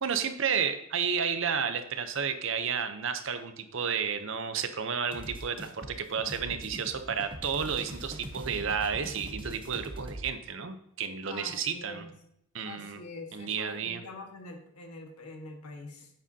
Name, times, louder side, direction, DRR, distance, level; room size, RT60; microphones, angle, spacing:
voice 1, 0.0-5.8 6.1-12.1 12.5-13.0 13.3-14.0, right 6 dB, 60° right, 8 dB, 0.7 m, -31 dB
sound 1, 5.1-10.3, right 1 dB, 25° right, 0.8 m, -42 dB
voice 2, 11.3-12.1 12.6-16.1, left 2 dB, 85° left, 3 dB, 1.5 m, -45 dB
9.0 x 7.6 x 2.8 m, 0.74 s
head